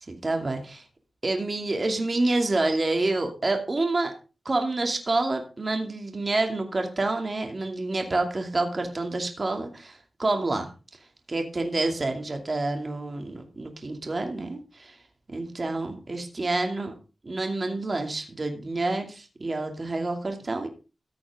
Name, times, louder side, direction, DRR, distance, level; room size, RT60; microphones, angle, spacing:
voice 1, 0.1-0.8 1.2-4.1 4.4-10.7 11.3-14.9 15.3-16.9 17.2-20.7, right 2 dB, 40° right, 4 dB, 2.5 m, -28 dB
14.5 x 8.5 x 3.6 m, 0.32 s
wide cardioid pair, 100°, 0 cm